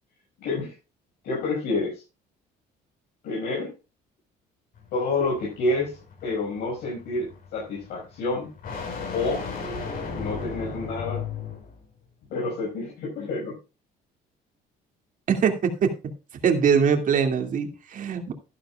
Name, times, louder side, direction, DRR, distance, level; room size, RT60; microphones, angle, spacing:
voice 1, 0.4-0.8 1.2-2.0 3.2-3.7 4.9-8.5 9.1-9.4 10.1-11.2 12.3-13.6, left 3 dB, 75° left, -3 dB, 5.7 m, -28 dB
sound 1, 4.8-11.8, left 5 dB, 55° left, 5.5 m, -36 dB
voice 2, 15.3-15.9 16.4-18.3, right 6 dB, 50° right, 5 dB, 2.5 m, -22 dB
13.0 x 12.0 x 2.4 m, 0.29 s
cardioid pair, 110°, 17 cm